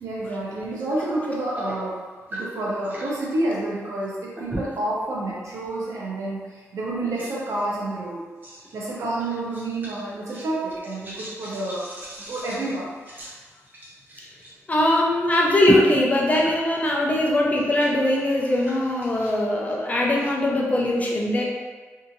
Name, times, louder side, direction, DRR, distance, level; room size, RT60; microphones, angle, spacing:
voice 1, 0.0-2.0 2.3-8.2 8.7-11.9 12.3-12.9, right 2 dB, 85° right, -4 dB, 0.7 m, -29 dB
sound 1, 0.7-1.0 1.3-3.2 4.3-4.9 5.5-5.7 6.4-6.5 7.2-7.6 8.4-8.8 9.2-14.5 14.8-14.9 15.6-17.1 17.4-20.3, right 2 dB, 35° right, 0.7 m, -34 dB
voice 2, 14.7-21.4, left 1 dB, 30° left, -3 dB, 0.5 m, -21 dB
2.7 x 2.5 x 2.6 m, 1.4 s
wide cardioid pair, 145°, 5 cm